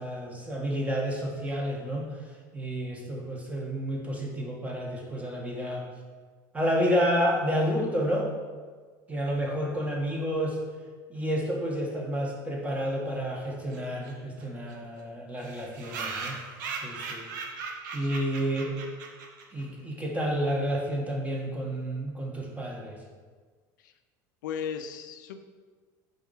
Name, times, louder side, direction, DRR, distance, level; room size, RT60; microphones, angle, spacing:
voice 1, 0.0-2.1 2.5-5.9 6.5-8.3 9.1-10.6 11.1-16.4 16.8-17.3 17.9-18.8 19.5-23.0, equal, 15° right, -1 dB, 1.4 m, -30 dB
sound 1, 13.7-13.8 14.1-14.2 14.4-14.5 14.7-14.8 15.4-19.6, right 4 dB, 80° right, 0.8 m, -38 dB
voice 2, 18.0-18.3 23.8-23.9 24.4-25.4, left 7 dB, 85° left, 7 dB, 0.5 m, -36 dB
4.6 x 4.0 x 5.5 m, 1.5 s
supercardioid pair, 100°, 10 cm